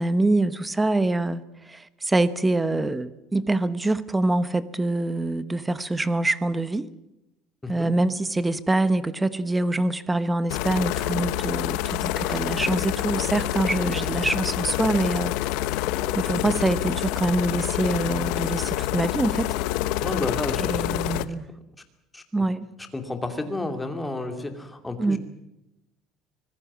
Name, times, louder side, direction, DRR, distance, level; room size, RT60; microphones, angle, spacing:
voice 1, 0.0-6.9 7.7-15.3 16.1-19.6 20.6-21.5 22.3-22.7 25.0-25.2, right 2 dB, 10° right, 15 dB, 1.0 m, -25 dB
voice 2, 7.6-7.9 20.0-20.8 22.1-22.2 22.9-25.2, left 2 dB, 5° left, 6 dB, 2.5 m, -31 dB
sound 1, 10.5-21.2, left 14 dB, 75° left, 1.1 m, -27 dB
25.5 x 19.5 x 7.4 m, 0.90 s
cardioid pair, 175°, 0 cm